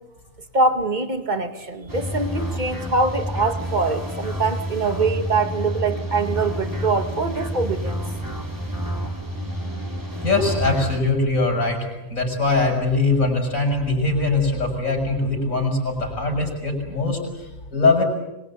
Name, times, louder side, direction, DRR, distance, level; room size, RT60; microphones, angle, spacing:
voice 1, 0.5-8.1, right 3 dB, 30° right, 7 dB, 2.2 m, -23 dB
sound 1, 1.9-11.0, equal, 15° right, 3.1 m, -29 dB
voice 2, 10.2-18.0, left 3 dB, 70° left, 2 dB, 7.2 m, -22 dB
25.5 x 23.0 x 8.7 m, 0.99 s
omnidirectional pair, 1.5 m